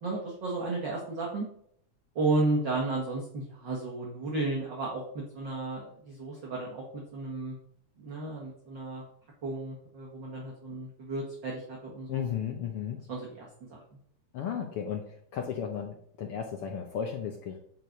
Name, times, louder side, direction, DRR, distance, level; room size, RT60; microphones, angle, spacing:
voice 1, 0.0-1.5 2.2-7.6 8.0-9.0 9.4-12.3 13.1-13.8, right 2 dB, 45° right, -3 dB, 2.0 m, -33 dB
voice 2, 12.1-13.0 14.3-17.6, left 8 dB, 70° left, 3 dB, 1.4 m, -34 dB
9.6 x 4.7 x 5.2 m, 0.67 s
omnidirectional pair, 3.4 m